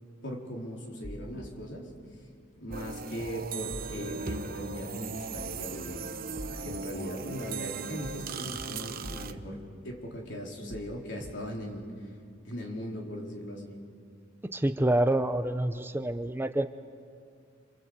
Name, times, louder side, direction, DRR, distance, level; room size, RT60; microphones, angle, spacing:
voice 1, 0.2-1.9 2.6-6.1 6.5-11.9 12.4-13.8, equal, 65° left, -1 dB, 4.2 m, -39 dB
sound 1, 1.0-1.5 2.7-2.9 3.2-3.3 3.7-4.1 5.4-5.6 5.9-6.0 6.4-6.8 8.0-8.3 8.5-8.6 9.0-9.5 10.7-10.9 11.2-11.3, equal, 30° right, 1.5 m, -43 dB
sound 2, 2.7-9.3, right 5 dB, 50° right, 1.0 m, -38 dB
voice 2, 14.4-16.7, right 1 dB, 10° right, 9 dB, 0.6 m, -27 dB
27.5 x 27.0 x 8.0 m, 2.2 s
head